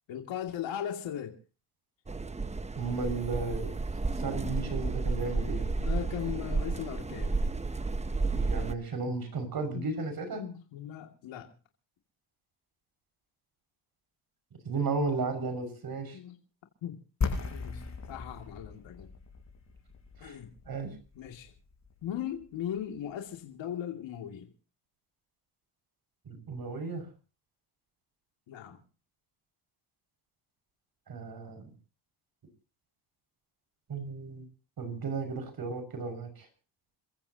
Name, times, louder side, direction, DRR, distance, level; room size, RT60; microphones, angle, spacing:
voice 1, 0.1-1.3 5.8-7.4 9.7-9.9 10.4-11.5 16.1-16.4 16.8-17.0 17.5-19.1 20.2-20.5 21.1-21.5 22.0-24.5 28.5-28.8, left 10 dB, 75° left, 2.6 m, -38 dB
sound 1, 2.1-8.7, right 3 dB, 15° right, 0.9 m, -32 dB
voice 2, 2.8-3.8 4.2-5.6 8.4-10.4 14.6-16.2 20.2-20.4 20.7-20.9 26.2-27.0 31.1-31.7 33.9-34.5 34.8-36.5, right 4 dB, 50° right, 6.1 m, -34 dB
sound 2, 17.2-22.9, left 4 dB, 35° left, 6.6 m, -38 dB
29.0 x 15.0 x 2.9 m
cardioid pair, 100°, 46 cm